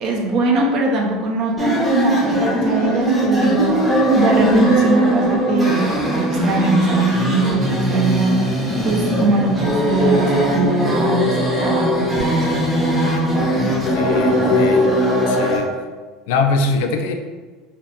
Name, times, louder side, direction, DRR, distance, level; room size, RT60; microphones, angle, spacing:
voice 1, 0.0-3.9 4.2-8.4 8.8-12.6, right 2 dB, 45° right, 0 dB, 0.5 m, -21 dB
sound 1, 1.6-15.6, equal, ahead, 0.7 m, -19 dB
voice 2, 13.7-14.9 15.3-15.7 16.3-17.1, left 3 dB, 85° left, 5 dB, 0.4 m, -22 dB
2.7 x 2.3 x 3.4 m, 1.3 s
cardioid pair, 160°, 0 cm